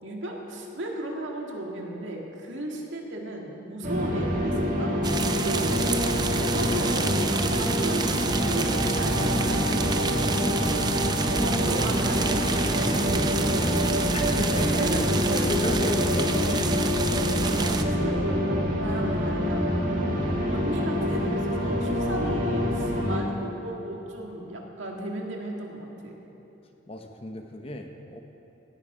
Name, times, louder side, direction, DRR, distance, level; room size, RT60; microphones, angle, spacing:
voice 1, 0.0-4.9 5.4-5.9 6.3-13.9 14.4-15.9 16.3-16.5 17.5-20.1 20.5-26.2, right 1 dB, 80° right, 0 dB, 1.9 m, -35 dB
sound 1, 3.8-23.2, equal, 40° right, 1.8 m, -26 dB
sound 2, 5.0-17.8, right 3 dB, 20° right, 0.5 m, -29 dB
voice 2, 6.6-7.7 14.1-14.9 15.5-17.1 26.9-28.2, left 2 dB, 30° left, 4 dB, 0.9 m, -35 dB
17.5 x 10.0 x 5.0 m, 3.0 s
head